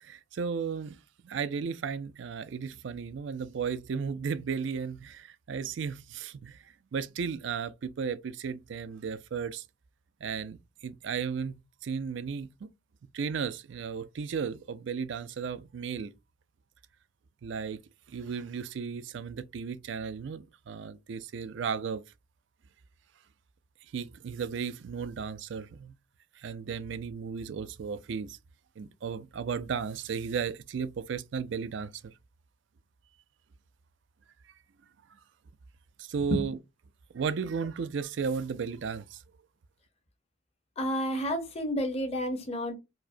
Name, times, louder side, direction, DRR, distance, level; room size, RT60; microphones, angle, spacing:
voice 1, 0.0-1.0 1.2-6.6 6.9-9.6 10.2-10.6 10.8-12.7 13.1-16.1 17.4-17.8 18.1-22.0 23.9-25.9 26.4-28.4 28.8-32.1 36.0-36.6 37.1-39.2, right 6 dB, 65° right, 0.4 m, -34 dB
voice 2, 40.8-42.8, equal, 30° left, 0.8 m, -30 dB
4.7 x 2.1 x 2.5 m
head